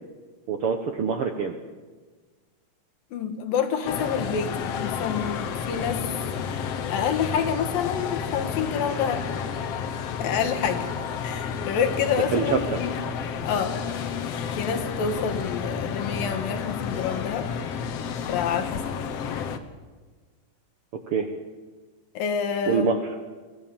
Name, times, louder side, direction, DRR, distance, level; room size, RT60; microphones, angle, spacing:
voice 1, 0.5-1.6 12.1-12.6 21.1-21.3 22.7-23.0, right 6 dB, 70° right, 6 dB, 1.4 m, -25 dB
voice 2, 3.1-6.0 6.4-6.5 6.9-9.3 10.2-10.9 11.2-13.0 13.4-13.8 14.6-17.5 18.3-18.9 22.1-22.9, left 7 dB, 90° left, 6 dB, 3.3 m, -28 dB
sound 1, 3.8-19.6, left 6 dB, 60° left, 1.8 m, -31 dB
23.5 x 15.5 x 7.3 m, 1.4 s
omnidirectional pair, 3.9 m